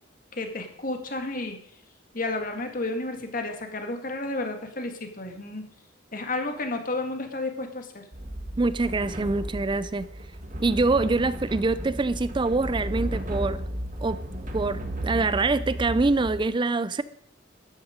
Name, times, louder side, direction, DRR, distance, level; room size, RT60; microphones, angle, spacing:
voice 1, 0.3-1.6 2.1-5.7 6.1-8.1, left 2 dB, 45° left, 5 dB, 1.9 m, -31 dB
sound 1, 8.1-16.4, right 1 dB, 40° right, 2.2 m, -34 dB
voice 2, 8.6-10.1 10.6-13.6 14.0-14.2 14.5-17.0, right 3 dB, 25° right, 16 dB, 0.4 m, -25 dB
13.0 x 12.0 x 5.1 m, 0.67 s
head